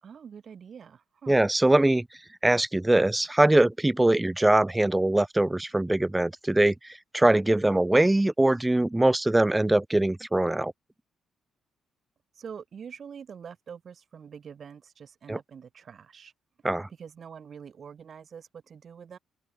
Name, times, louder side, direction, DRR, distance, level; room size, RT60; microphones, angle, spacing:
voice 1, 0.0-1.4 12.3-16.3 17.0-19.2, right 7 dB, 50° right, 4.4 m, -45 dB
voice 2, 1.3-2.1 2.4-6.7 7.1-10.7 15.3-15.4 16.6-16.9, right 1 dB, 10° right, 1.9 m, -22 dB
open air
cardioid pair, 90°, 0 cm